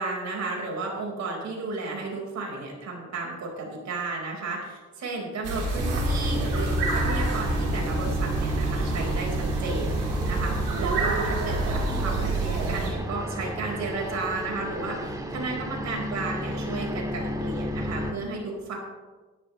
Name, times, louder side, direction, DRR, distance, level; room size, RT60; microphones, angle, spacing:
voice 1, 0.0-18.8, right 3 dB, 65° right, -1 dB, 4.8 m, -33 dB
sound 1, 5.4-12.9, right 2 dB, 90° right, 3.2 m, -28 dB
sound 2, 5.7-18.1, equal, 10° right, 1.7 m, -31 dB
17.0 x 12.5 x 3.2 m, 1.3 s
cardioid pair, 90°, 30 cm